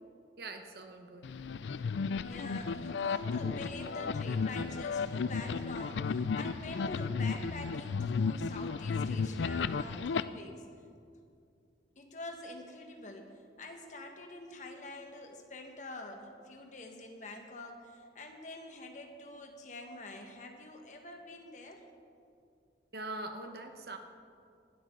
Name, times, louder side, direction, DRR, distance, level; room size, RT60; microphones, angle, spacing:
voice 1, 0.4-1.3 22.9-24.0, right 2 dB, 60° right, 6 dB, 1.2 m, -42 dB
sound 1, 1.2-10.2, left 5 dB, 85° left, 0.4 m, -34 dB
voice 2, 2.2-10.7 11.9-21.8, left 2 dB, 45° left, 3 dB, 1.6 m, -46 dB
20.0 x 12.5 x 3.9 m, 2.4 s
head